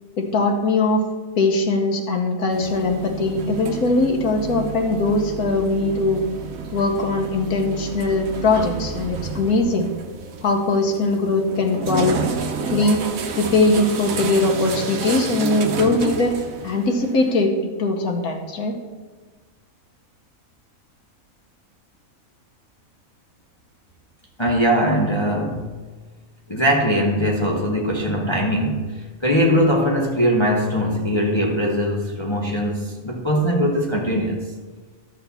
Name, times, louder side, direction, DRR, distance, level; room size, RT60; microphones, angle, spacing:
voice 1, 0.2-1.0 1.4-6.2 6.7-9.9 10.4-12.2 12.7-13.0 13.3-16.4 16.6-17.5 17.8-18.7, left 2 dB, 90° left, 2 dB, 1.6 m, -20 dB
sound 1, 2.5-17.4, right 5 dB, 70° right, 1.3 m, -30 dB
voice 2, 24.4-25.7 26.5-34.4, equal, 20° left, -1 dB, 0.9 m, -21 dB
12.0 x 4.3 x 6.9 m, 1.4 s
omnidirectional pair, 1.5 m